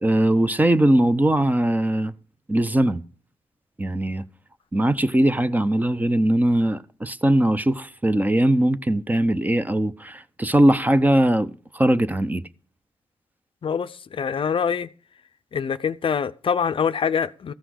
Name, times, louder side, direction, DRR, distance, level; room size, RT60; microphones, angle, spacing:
voice 1, 0.0-2.1 2.5-3.0 3.8-4.2 4.7-12.4, right 1 dB, 15° right, 0.7 m, -20 dB
voice 2, 13.6-14.9 15.5-17.5, left 7 dB, 50° left, 0.5 m, -24 dB
14.0 x 5.8 x 6.3 m
cardioid pair, 95°, 11 cm